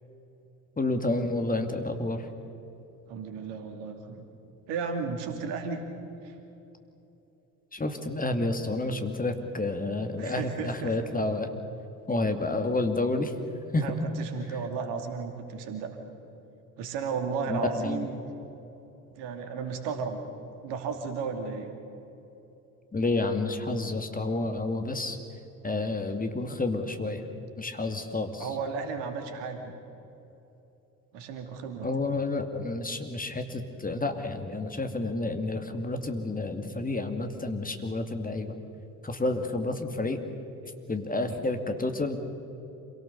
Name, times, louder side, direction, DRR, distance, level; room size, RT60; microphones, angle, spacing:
voice 1, 0.8-2.3 7.7-11.5 12.1-13.3 13.7-13.8 17.5-18.1 22.9-25.2 25.6-27.2 27.6-28.5 31.8-38.5 39.0-40.2 40.9-42.2, left 2 dB, 20° left, 6 dB, 2.3 m, -30 dB
voice 2, 3.1-4.2 4.7-5.8 6.2-6.3 10.2-10.9 13.8-16.0 16.8-18.2 19.2-20.2 20.6-21.7 28.4-29.7 31.1-31.9 33.9-34.0, right 5 dB, 65° right, 5 dB, 2.7 m, -34 dB
27.5 x 18.0 x 6.9 m, 3.0 s
figure-of-eight pair, 50°, 45 cm